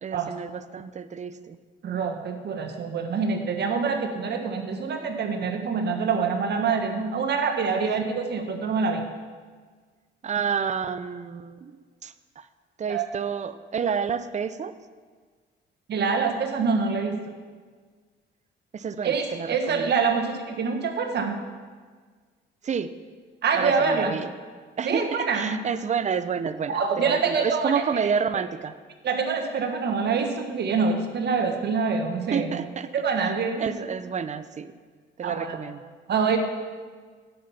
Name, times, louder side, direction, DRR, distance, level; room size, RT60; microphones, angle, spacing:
voice 1, 0.0-1.6 10.2-12.5 12.8-14.7 18.7-19.9 22.6-23.0 23.5-24.3 24.8-28.8 32.3-32.9 33.6-34.7 35.2-35.8, right 6 dB, 35° right, 13 dB, 0.6 m, -29 dB
voice 2, 1.8-9.1 12.9-13.1 15.9-17.4 19.0-21.3 23.4-24.2 24.8-25.6 26.7-28.1 29.0-32.7 32.9-33.7 35.2-35.6 36.1-36.4, right 5 dB, 55° right, 5 dB, 1.3 m, -25 dB
10.0 x 5.7 x 7.0 m, 1.5 s
cardioid pair, 90°, 20 cm